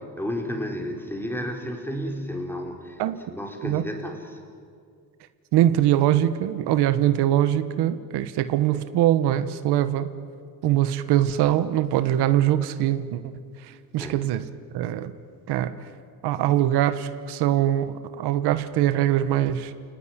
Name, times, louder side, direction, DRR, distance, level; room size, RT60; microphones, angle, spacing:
voice 1, 0.2-3.0 3.3-4.4 14.0-14.3, equal, 5° left, 2 dB, 4.6 m, -32 dB
voice 2, 5.5-10.1 10.6-13.2 13.9-14.4 14.7-15.1 15.5-15.7 16.2-19.7, right 12 dB, 90° right, 12 dB, 1.2 m, -22 dB
29.5 x 19.0 x 9.7 m, 2.2 s
cardioid pair, 105°, 39 cm